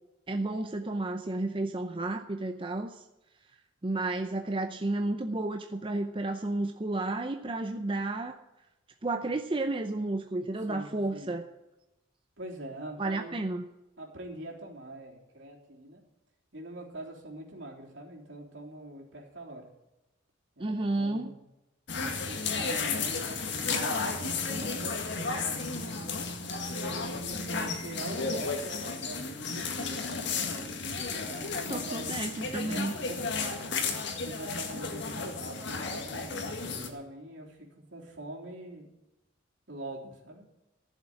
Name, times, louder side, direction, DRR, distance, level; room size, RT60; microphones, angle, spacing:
voice 1, 0.3-3.0 3.8-8.4 9.0-11.4 13.0-13.6 20.6-21.4 31.7-32.9, right 2 dB, 25° right, 6 dB, 0.6 m, -32 dB
voice 2, 10.7-11.3 12.4-13.4 14.0-16.0 16.5-19.7 20.6-21.4 21.9-25.9 26.9-30.2 31.2-32.2 32.6-33.2 33.8-38.9 39.7-40.5, right 1 dB, 65° right, -2 dB, 3.6 m, -44 dB
sound 1, 21.9-36.9, left 4 dB, 65° left, 1.9 m, -33 dB
14.5 x 7.4 x 8.7 m, 0.96 s
head